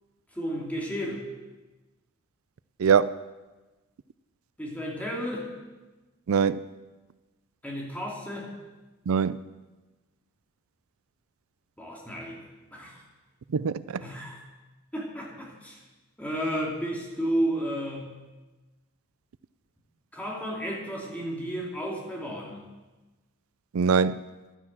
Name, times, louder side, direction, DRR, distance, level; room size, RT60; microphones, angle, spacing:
voice 1, 0.3-1.3 4.6-5.5 7.6-8.5 11.8-12.4 12.7-13.0 14.0-14.4 14.9-15.8 16.2-18.1 20.1-22.6, equal, 5° left, 2.7 m, -32 dB
voice 2, 2.8-3.2 6.3-6.6 9.1-9.4 13.5-14.0 23.7-24.2, right 6 dB, 80° right, 0.4 m, -23 dB
12.5 x 10.0 x 7.5 m
head